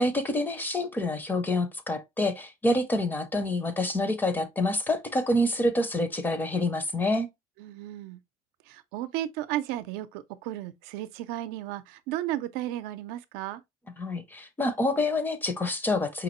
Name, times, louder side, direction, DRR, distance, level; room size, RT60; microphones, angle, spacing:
voice 1, 0.0-7.3 14.0-16.2, left 1 dB, 10° left, 0.4 m, -27 dB
voice 2, 7.6-8.2 8.7-13.6, right 14 dB, 80° right, 0.5 m, -34 dB
5.0 x 2.9 x 3.0 m
cardioid pair, 175°, 16 cm